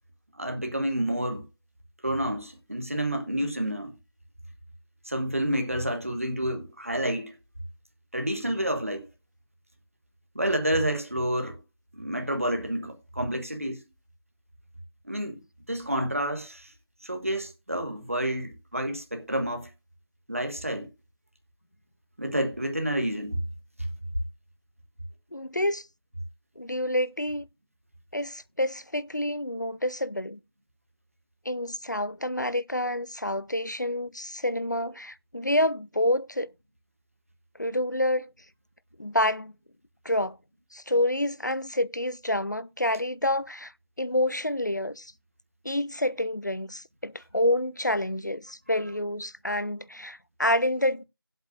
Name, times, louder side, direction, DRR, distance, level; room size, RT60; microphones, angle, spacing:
voice 1, 0.3-1.4 2.0-3.9 5.0-7.3 8.1-9.0 10.3-11.6 11.9-13.8 15.1-15.4 15.7-16.7 17.0-19.7 20.3-20.9 22.2-23.4, right 1 dB, 35° right, 1.4 m, -29 dB
voice 2, 25.3-25.8 26.6-27.5 28.1-30.4 31.5-36.5 37.6-38.3 39.0-39.5 40.0-40.4 40.7-43.7 44.0-45.1 45.6-51.0, left 1 dB, 50° left, 0.5 m, -28 dB
17.5 x 8.1 x 2.5 m
figure-of-eight pair, 180°, 12 cm